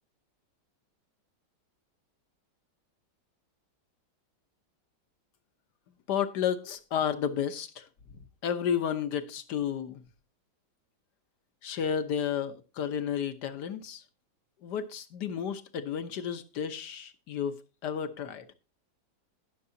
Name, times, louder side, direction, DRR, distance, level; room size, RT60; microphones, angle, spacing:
voice 1, 6.1-7.9 8.1-10.0 11.6-14.0 14.6-18.5, left 8 dB, 60° left, 1.5 m, -32 dB
20.0 x 6.8 x 2.8 m
omnidirectional pair, 2.2 m